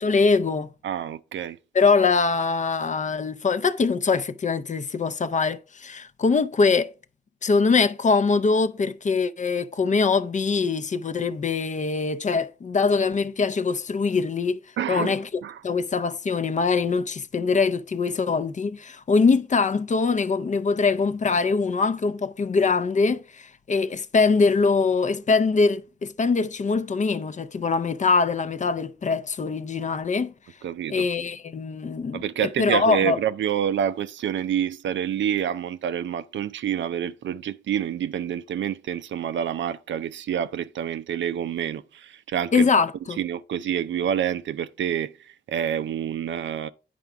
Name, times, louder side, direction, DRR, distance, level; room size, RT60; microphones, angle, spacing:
voice 1, 0.0-0.7 1.7-6.9 7.4-14.6 14.9-30.3 30.9-33.2 42.5-43.2, left 4 dB, 40° left, 0.5 m, -23 dB
voice 2, 0.8-1.6 14.8-15.6 30.6-31.1 32.1-42.7 43.2-46.7, right 9 dB, 75° right, 0.5 m, -28 dB
9.3 x 4.9 x 3.4 m
cardioid pair, 80°, 19 cm